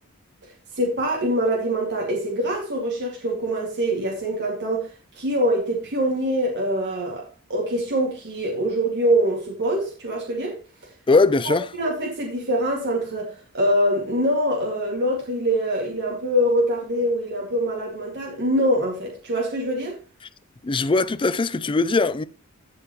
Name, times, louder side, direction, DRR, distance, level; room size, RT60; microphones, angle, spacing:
voice 1, 0.8-4.9 5.1-7.2 7.5-10.6 11.4-20.0, equal, 55° right, 2.4 m, -24 dB
voice 2, 11.1-11.7 20.6-22.2, left 3 dB, 25° left, 0.4 m, -20 dB
15.0 x 5.6 x 3.1 m
head